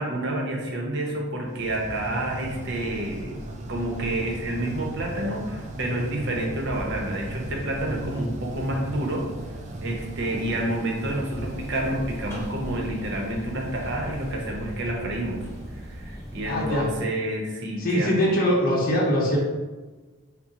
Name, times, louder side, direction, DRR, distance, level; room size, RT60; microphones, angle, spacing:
voice 1, 0.0-3.4 3.7-9.3 9.8-15.5 15.7-18.2, right 1 dB, 55° right, 0 dB, 0.7 m, -29 dB
sound 1, 1.5-16.5, right 1 dB, 35° right, 0.4 m, -37 dB
sound 2, 11.3-17.0, equal, 10° left, 0.8 m, -40 dB
voice 2, 16.4-16.9 17.8-19.4, equal, 45° left, -3 dB, 0.8 m, -22 dB
4.2 x 2.1 x 3.7 m, 1.3 s
head